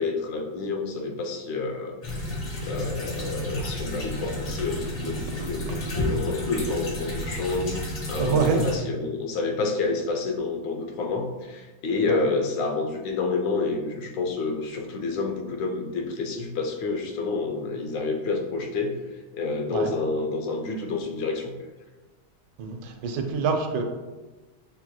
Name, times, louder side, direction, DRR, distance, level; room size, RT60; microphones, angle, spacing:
voice 1, 0.0-2.3 2.6-19.0 19.3-21.5, left 3 dB, 85° left, 4 dB, 1.3 m, -29 dB
sound 1, 2.0-8.8, left 1 dB, 50° left, 0.6 m, -31 dB
voice 2, 8.2-8.6 12.1-12.2 19.7-19.9 22.6-23.8, right 5 dB, 80° right, 4 dB, 1.3 m, -26 dB
6.1 x 2.9 x 2.2 m, 1.2 s
omnidirectional pair, 1.9 m